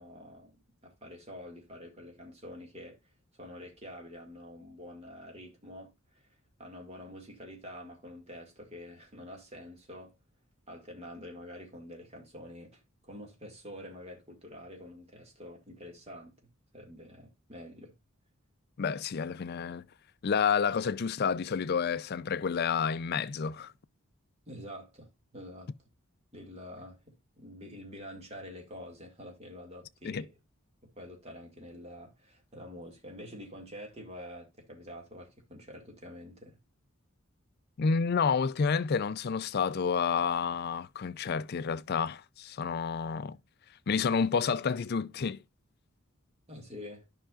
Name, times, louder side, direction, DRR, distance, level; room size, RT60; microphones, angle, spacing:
voice 1, 0.0-3.0 3.4-10.1 10.7-16.3 16.7-17.9 24.5-25.7 26.3-30.3 30.8-36.6 46.5-47.1, left 1 dB, 30° right, 2.0 m, -47 dB
voice 2, 18.8-19.8 20.2-23.7 30.0-30.2 37.8-43.4 43.9-45.4, left 6 dB, 45° left, 0.4 m, -29 dB
11.5 x 5.7 x 2.4 m
head